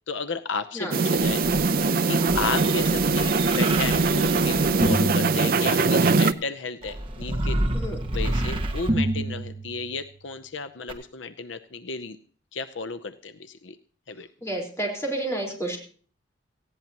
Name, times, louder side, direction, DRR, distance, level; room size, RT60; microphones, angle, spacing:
voice 1, 0.1-7.6 8.1-12.2 12.5-13.8 14.1-14.3, left 4 dB, 75° left, 11 dB, 0.7 m, -33 dB
sound 1, 0.9-6.3, right 4 dB, 50° right, 0.6 m, -22 dB
sound 2, 1.2-6.1 6.8-10.1 10.9-11.0, right 1 dB, 25° right, 1.7 m, -29 dB
voice 2, 14.4-15.8, right 1 dB, 15° left, -1 dB, 4.4 m, -30 dB
19.0 x 15.5 x 3.0 m, 0.43 s
head